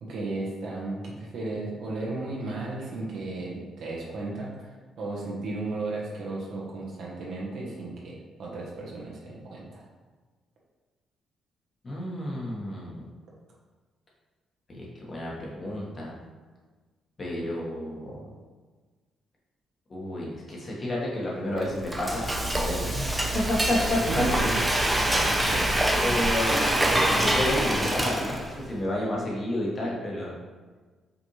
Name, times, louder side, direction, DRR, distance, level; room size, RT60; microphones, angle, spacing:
voice 1, 0.0-9.9 24.1-24.6 25.1-25.6, right 2 dB, 70° right, -4 dB, 1.1 m, -34 dB
voice 2, 11.8-13.0 14.7-16.1 17.2-18.2 19.9-24.2 25.0-25.1 26.0-26.7 27.0-30.3, left 1 dB, 35° left, -4 dB, 1.3 m, -31 dB
Frying (food), 21.6-28.6, right 1 dB, 10° right, 0.6 m, -25 dB
5.1 x 2.6 x 3.1 m, 1.4 s
cardioid pair, 90°, 0 cm